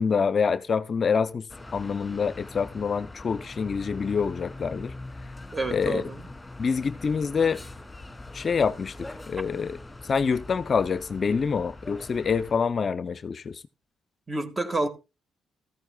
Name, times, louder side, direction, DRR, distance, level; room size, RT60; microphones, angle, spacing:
voice 1, 0.0-1.5 1.7-4.9 5.7-6.0 6.6-7.6 8.3-9.8 10.1-13.6, left 5 dB, 45° left, 0.6 m, -26 dB
sound 1, 1.5-12.6, left 2 dB, 10° left, 2.3 m, -42 dB
voice 2, 5.5-6.3 14.3-14.9, right 2 dB, 20° right, 1.7 m, -29 dB
14.5 x 14.0 x 2.3 m
cardioid pair, 90°, 0 cm